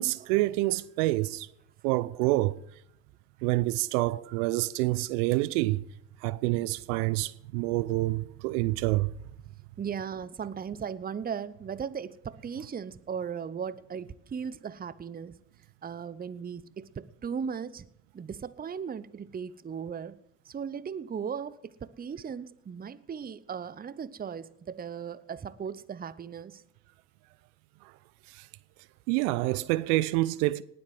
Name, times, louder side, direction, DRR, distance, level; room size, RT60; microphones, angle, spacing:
voice 1, 0.0-1.5 1.8-2.6 3.4-5.8 6.2-9.1 27.8-27.9 28.3-28.5 29.1-30.6, right 19 dB, 70° right, 0.6 m, -27 dB
voice 2, 9.8-15.4 15.8-17.9 18.1-20.2 20.5-26.6, right 7 dB, 20° right, 0.7 m, -37 dB
18.5 x 7.8 x 7.6 m
hypercardioid pair, 60°, 49 cm